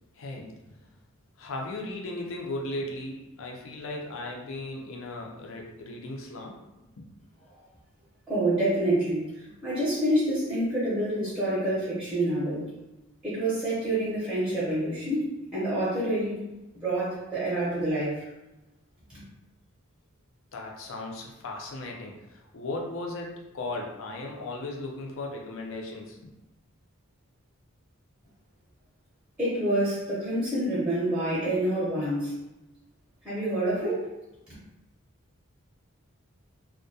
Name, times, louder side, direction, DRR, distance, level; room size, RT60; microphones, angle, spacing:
voice 1, 0.2-0.7 1.4-7.1 20.5-26.3, left 2 dB, 70° left, 0 dB, 0.5 m, -37 dB
voice 2, 8.3-9.3 9.6-12.7 13.2-16.4 16.8-18.2 19.1-19.2 29.4-32.3 33.2-34.0, right 1 dB, 5° right, -9 dB, 0.6 m, -27 dB
2.2 x 2.1 x 2.6 m, 0.98 s
head